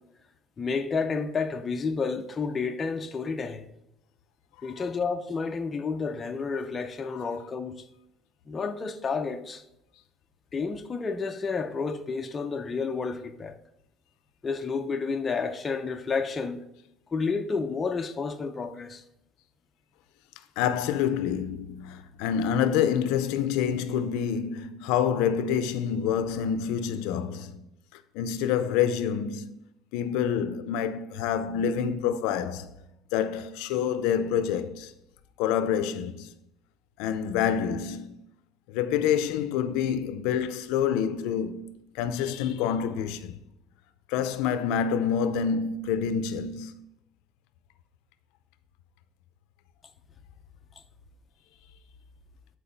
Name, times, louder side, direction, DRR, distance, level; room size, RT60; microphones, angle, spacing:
voice 1, 0.6-3.7 4.6-7.7 8.5-9.6 10.5-13.6 14.4-16.6 17.1-19.0, left 4 dB, 20° left, 0.5 m, -30 dB
voice 2, 20.6-27.6 27.9-29.6 29.9-32.7 33.1-34.9 35.4-36.3 37.0-38.2 38.7-43.4 44.1-46.7, left 8 dB, 85° left, 0.5 m, -27 dB
8.7 x 4.6 x 4.0 m
cardioid pair, 160°, 0 cm